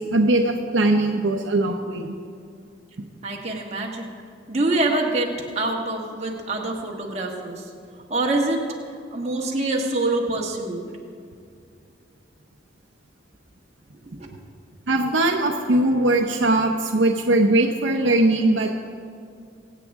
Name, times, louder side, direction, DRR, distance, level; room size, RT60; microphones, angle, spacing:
voice 1, 0.1-2.1 14.9-18.7, right 2 dB, 75° right, 3 dB, 0.8 m, -20 dB
voice 2, 3.2-4.1 4.5-5.3 5.5-7.6 8.1-8.6 9.1-10.8 14.2-14.3, right 2 dB, 35° right, -1 dB, 1.5 m, -25 dB
23.0 x 8.4 x 3.6 m, 2.3 s
head